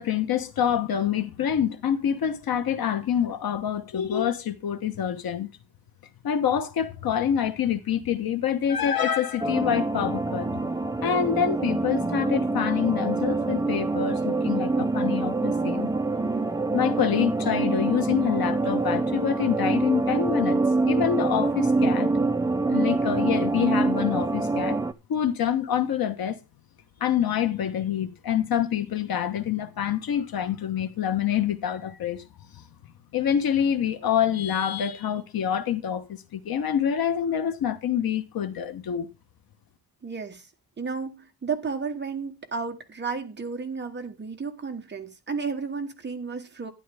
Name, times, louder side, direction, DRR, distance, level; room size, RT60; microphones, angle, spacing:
voice 1, 0.0-5.5 6.2-10.5 11.0-15.9 16.7-22.1 22.7-24.8 25.1-26.4 27.0-32.2 32.5-32.6 33.1-39.1, left 9 dB, 65° left, 1.2 m, -26 dB
sound 1, 9.4-24.9, right 3 dB, 10° right, 0.5 m, -25 dB
voice 2, 40.0-40.5 40.8-46.7, right 5 dB, 25° right, 1.3 m, -33 dB
12.0 x 10.5 x 3.4 m
wide cardioid pair, 180°, 39 cm